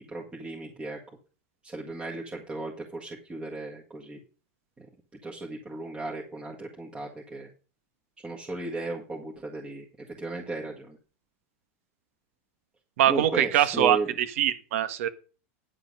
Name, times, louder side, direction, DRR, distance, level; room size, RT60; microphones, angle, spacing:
voice 1, 0.1-1.2 1.6-4.2 4.8-4.9 5.2-7.5 8.2-11.0 13.1-14.1, right 2 dB, 15° right, -1 dB, 1.7 m, -35 dB
voice 2, 13.0-15.1, right 11 dB, 75° right, 11 dB, 1.5 m, -23 dB
9.9 x 7.3 x 5.4 m, 0.36 s
supercardioid pair, 145°, 7 cm